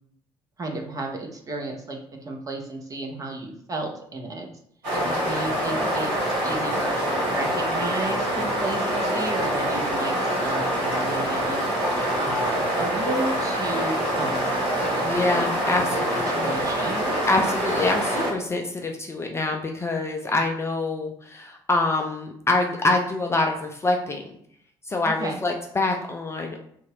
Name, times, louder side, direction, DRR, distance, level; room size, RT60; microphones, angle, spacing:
voice 1, 0.6-4.5 4.9-15.2 15.7-17.2 25.0-25.4, right 2 dB, 25° right, 2 dB, 0.7 m, -33 dB
sound 1, 4.8-18.3, equal, 65° right, 1.3 m, -25 dB
voice 2, 4.9-5.3 15.0-16.6 17.3-24.4 24.8-26.6, left 2 dB, 20° left, 2 dB, 0.4 m, -25 dB
2.8 x 2.3 x 2.9 m, 0.67 s
figure-of-eight pair, 50°, 13 cm